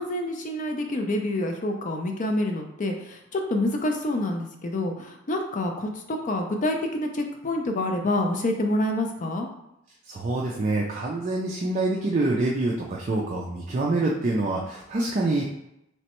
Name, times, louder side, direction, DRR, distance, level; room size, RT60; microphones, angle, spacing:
voice 1, 0.0-9.5, left 1 dB, 40° left, 3 dB, 0.4 m, -27 dB
voice 2, 10.1-15.4, right 2 dB, 35° right, -2 dB, 0.4 m, -26 dB
3.3 x 3.1 x 2.9 m, 0.84 s
head